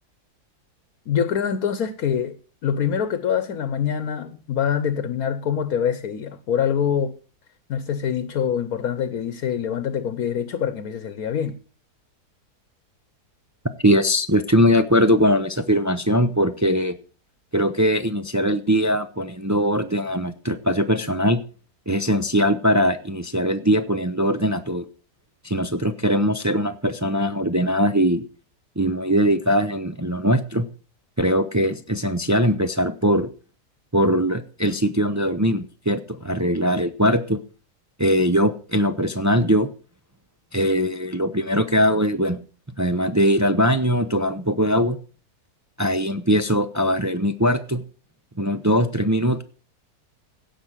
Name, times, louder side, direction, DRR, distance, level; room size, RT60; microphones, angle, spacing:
voice 1, 1.1-2.4 2.6-7.1 7.7-11.6, left 8 dB, 65° left, 1.4 m, -25 dB
voice 2, 13.8-17.0 17.5-21.4 21.9-24.8 25.4-28.2 28.8-30.7 31.2-33.3 33.9-37.4 38.0-39.7 40.5-42.4 42.8-45.0 45.8-47.8 48.4-49.4, equal, 30° right, 0.3 m, -21 dB
16.5 x 6.1 x 7.4 m
omnidirectional pair, 1.7 m